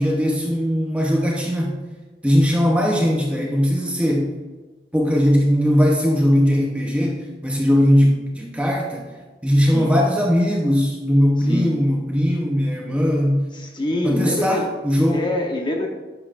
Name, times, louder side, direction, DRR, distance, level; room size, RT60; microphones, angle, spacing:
voice 1, 0.0-1.7 2.2-4.4 4.9-9.1 9.4-13.5 14.0-15.2, equal, 5° right, -1 dB, 0.8 m, -19 dB
voice 2, 13.5-14.8 15.1-15.9, left 1 dB, 25° left, 1 dB, 1.0 m, -25 dB
10.0 x 7.1 x 2.5 m, 1.3 s
head